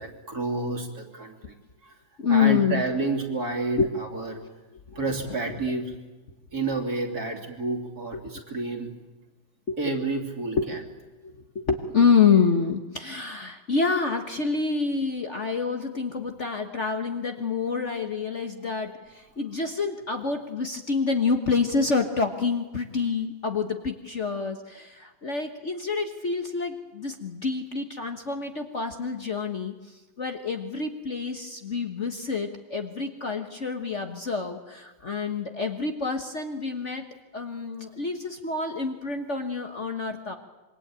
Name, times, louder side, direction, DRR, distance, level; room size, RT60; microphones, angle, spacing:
voice 1, 0.0-1.3 1.8-1.9 2.3-4.4 4.9-5.9 6.5-8.9 9.8-10.8, right 3 dB, 50° right, 3 dB, 3.4 m, -30 dB
voice 2, 2.2-2.8 3.8-3.9 4.4-4.5 4.9-5.0 5.5-5.6 8.1-8.2 9.7-9.8 10.6-10.7 11.2-29.7 30.2-37.0 37.3-40.4, left 5 dB, 40° left, 5 dB, 1.4 m, -27 dB
26.0 x 23.0 x 8.9 m, 1.2 s
omnidirectional pair, 2.1 m